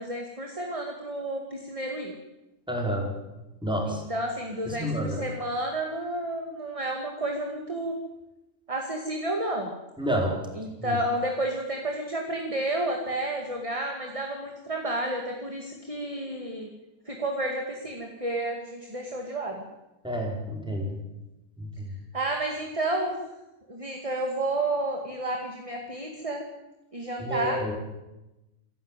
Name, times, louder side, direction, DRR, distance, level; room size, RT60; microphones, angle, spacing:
voice 1, 0.0-2.1 3.9-8.0 8.7-9.7 10.5-16.7 17.1-19.6 22.1-23.2 23.7-26.4 26.9-27.6, right 1 dB, 20° right, 2 dB, 2.4 m, -31 dB
voice 2, 2.7-3.1 3.6-4.0 4.7-5.2 10.0-10.3 10.8-11.0 20.0-21.0 21.6-21.9 27.2-27.7, equal, 5° right, 0 dB, 4.8 m, -29 dB
27.0 x 11.5 x 9.2 m, 1.0 s
omnidirectional pair, 1.6 m